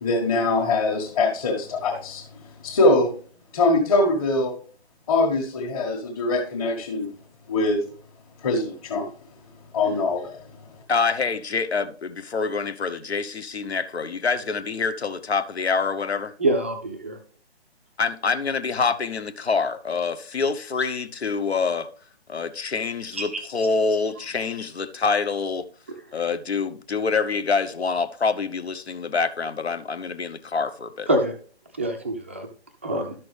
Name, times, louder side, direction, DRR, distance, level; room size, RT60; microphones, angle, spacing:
voice 1, 0.0-2.2 2.6-3.1 3.5-4.5 5.1-7.1 7.5-7.8 8.4-9.1 9.7-10.3, left 2 dB, 25° left, 1.7 m, -22 dB
voice 2, 10.9-16.3 18.0-21.9 22.3-25.7 26.1-31.1, left 4 dB, 70° left, 1.0 m, -26 dB
voice 3, 16.4-17.2 23.1-23.4 31.1-31.3 31.8-32.5 32.8-33.1, right 1 dB, 10° right, 0.4 m, -25 dB
12.0 x 6.1 x 3.3 m
figure-of-eight pair, 145°, 33 cm